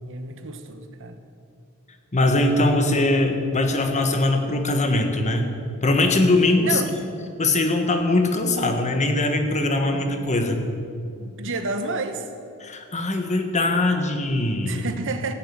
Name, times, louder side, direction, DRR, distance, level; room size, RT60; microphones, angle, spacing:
voice 1, 0.0-1.2 6.6-6.9 9.9-10.3 11.2-12.3 14.6-15.3, right 3 dB, 60° right, 7 dB, 1.2 m, -31 dB
voice 2, 2.1-5.5 5.8-6.8 7.4-10.7 12.6-14.8, left 2 dB, 30° left, 5 dB, 1.5 m, -21 dB
17.0 x 7.6 x 8.7 m, 2.6 s
head